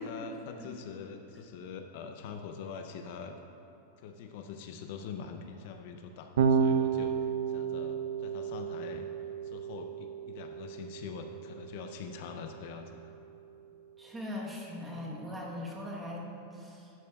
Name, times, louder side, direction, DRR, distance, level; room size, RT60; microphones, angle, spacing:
voice 1, 0.0-3.4 4.0-9.1 9.4-13.1, left 6 dB, 50° left, 5 dB, 0.5 m, -44 dB
Electric guitar / Bass guitar, 6.4-12.8, right 6 dB, 75° right, 0.5 m, -32 dB
voice 2, 14.0-16.9, left 1 dB, 10° right, -3 dB, 1.1 m, -40 dB
11.5 x 10.0 x 2.3 m, 2.8 s
supercardioid pair, 170°, 0 cm